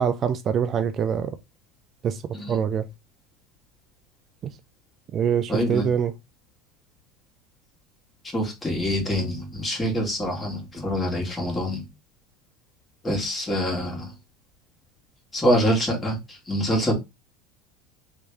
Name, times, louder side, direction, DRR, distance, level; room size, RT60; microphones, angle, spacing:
voice 1, 0.0-1.4 2.0-2.2 2.5-2.9 4.4-4.5 5.1-6.1, right 8 dB, 40° right, 0.4 m, -24 dB
voice 2, 5.5-5.9 8.3-11.9 13.0-14.1 15.3-16.9, equal, 20° left, 1.7 m, -25 dB
3.1 x 2.9 x 3.4 m
supercardioid pair, 100°, 0 cm